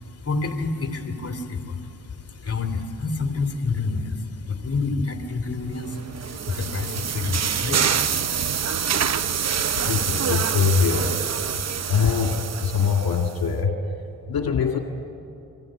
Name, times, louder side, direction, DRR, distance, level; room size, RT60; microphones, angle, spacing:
voice 1, 0.0-7.9, left 4 dB, 40° left, 6 dB, 2.8 m, -28 dB
sound 1, 5.9-13.4, right 7 dB, 45° right, 0.8 m, -26 dB
voice 2, 9.9-11.2 11.9-13.8 14.3-14.8, left 6 dB, 70° left, 3 dB, 2.1 m, -22 dB
30.0 x 21.5 x 8.8 m, 2.7 s
cardioid pair, 75°, 37 cm